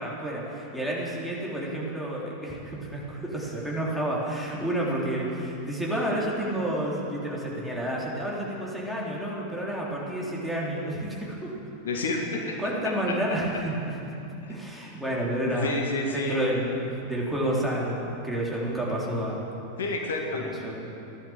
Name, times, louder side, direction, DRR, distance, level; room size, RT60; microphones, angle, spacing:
voice 1, 0.0-11.6 12.6-14.1 14.5-15.8 16.1-19.5 20.3-20.9, right 1 dB, ahead, -5 dB, 3.6 m, -30 dB
voice 2, 11.8-12.4 13.1-13.2 14.4-14.5 15.6-16.5 19.8-20.5, left 2 dB, 65° left, 1 dB, 2.0 m, -29 dB
15.5 x 11.5 x 7.5 m, 2.9 s
figure-of-eight pair, 90°, 0 cm